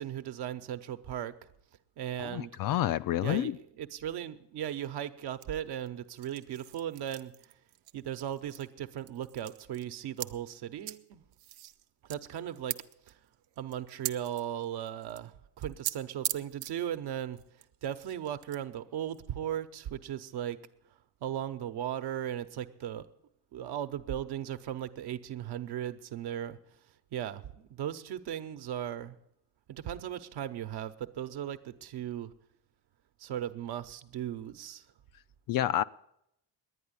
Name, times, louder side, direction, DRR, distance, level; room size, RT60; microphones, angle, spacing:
voice 1, 0.0-1.3 2.0-2.5 3.2-7.3 7.9-11.2 12.0-12.8 13.1-13.2 13.6-17.4 17.8-20.6 21.2-23.1 23.5-26.6 27.1-29.2 29.7-32.3 33.2-34.8, right 10 dB, 60° right, 9 dB, 0.9 m, -37 dB
voice 2, 2.2-3.6 35.5-35.8, left 13 dB, 50° left, 15 dB, 0.4 m, -29 dB
sound 1, 5.4-8.7 9.0-10.3 10.8-11.0 11.3-15.3 15.6-15.9 16.2-16.7 17.3-18.6 19.1-19.3, right 15 dB, 90° right, 0.7 m, -41 dB
10.5 x 9.7 x 9.7 m, 0.78 s
cardioid pair, 100°, 43 cm